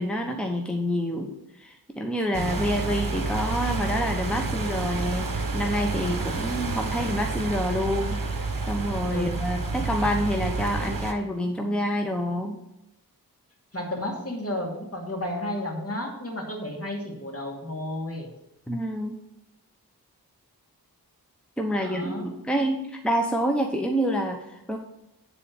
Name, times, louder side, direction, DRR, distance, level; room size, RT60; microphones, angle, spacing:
voice 1, 0.0-8.2 8.7-12.6 18.7-19.1 21.6-24.8, equal, 5° left, 2 dB, 1.0 m, -27 dB
voice 2, 2.3-2.7 9.1-9.8 13.7-18.3 21.7-22.3, left 1 dB, 40° left, 1 dB, 2.5 m, -33 dB
sound 1, 2.3-11.1, right 3 dB, 60° right, 1.3 m, -29 dB
10.0 x 4.2 x 7.4 m, 0.90 s
wide cardioid pair, 55°, 38 cm